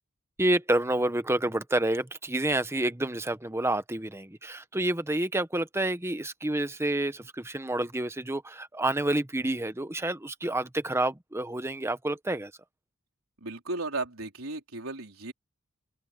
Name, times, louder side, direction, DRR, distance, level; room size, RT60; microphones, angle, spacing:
voice 1, 0.4-12.5, right 1 dB, 10° right, 1.0 m, -29 dB
voice 2, 13.4-15.3, right 2 dB, 75° right, 4.2 m, -35 dB
open air
head